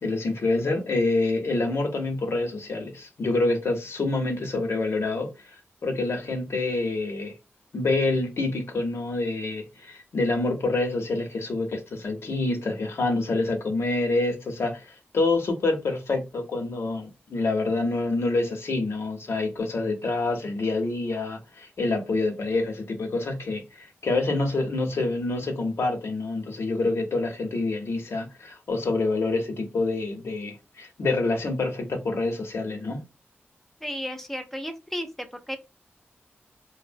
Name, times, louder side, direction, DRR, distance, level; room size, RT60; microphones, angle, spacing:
voice 1, 0.0-5.3 5.8-7.3 7.7-33.0, left 2 dB, 75° left, 0.7 m, -27 dB
voice 2, 33.8-35.6, equal, 5° left, 0.5 m, -33 dB
2.9 x 2.1 x 2.5 m
wide cardioid pair, 95°, 4 cm